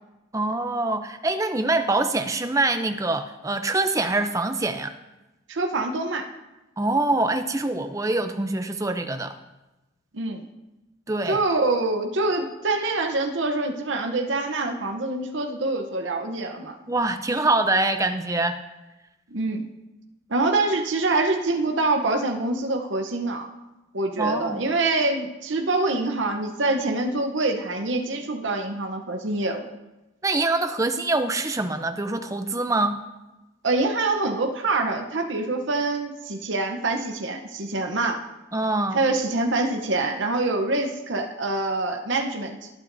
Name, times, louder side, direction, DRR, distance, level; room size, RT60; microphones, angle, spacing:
voice 1, 0.3-4.9 6.8-9.4 11.1-11.4 16.9-18.6 24.2-24.7 30.2-33.0 38.5-39.0, right 2 dB, 15° right, 8 dB, 0.5 m, -24 dB
voice 2, 5.5-6.3 10.1-10.4 11.3-16.8 19.3-19.6 20.3-23.5 23.9-29.7 33.6-38.2 38.9-42.7, right 2 dB, 70° right, 4 dB, 0.8 m, -25 dB
19.5 x 8.8 x 2.7 m, 1.0 s
head